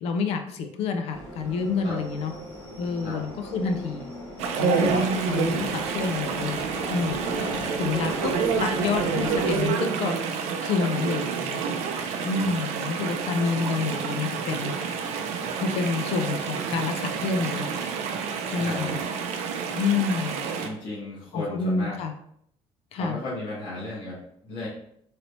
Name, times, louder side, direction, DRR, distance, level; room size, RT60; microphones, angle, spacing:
voice 1, 0.0-2.3 2.8-4.1 4.6-7.5 7.8-8.3 8.6-11.7 12.2-14.7 15.2-17.7 18.5-19.0 19.7-20.5 21.3-22.1 22.9-23.2, left 4 dB, 65° left, 6 dB, 0.4 m, -28 dB
sound 1, 1.1-9.7, equal, 20° left, 1.1 m, -38 dB
Chatter / Stream, 4.4-20.7, right 6 dB, 80° right, 0.4 m, -28 dB
voice 2, 7.4-7.7 12.3-12.5 18.6-18.9 20.6-22.0 22.9-24.7, left 2 dB, 45° left, -8 dB, 1.1 m, -35 dB
3.1 x 2.9 x 2.6 m, 0.70 s
cardioid pair, 170°, 11 cm